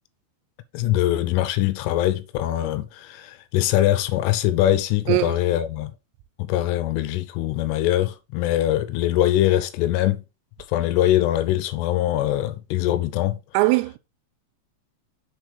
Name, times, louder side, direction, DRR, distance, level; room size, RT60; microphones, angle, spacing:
voice 1, 0.7-5.9 6.4-10.2 10.7-13.4, left 13 dB, 85° left, 3.1 m, -22 dB
voice 2, 13.5-14.0, right 21 dB, 90° right, 3.3 m, -20 dB
7.0 x 4.4 x 5.0 m
omnidirectional pair, 5.9 m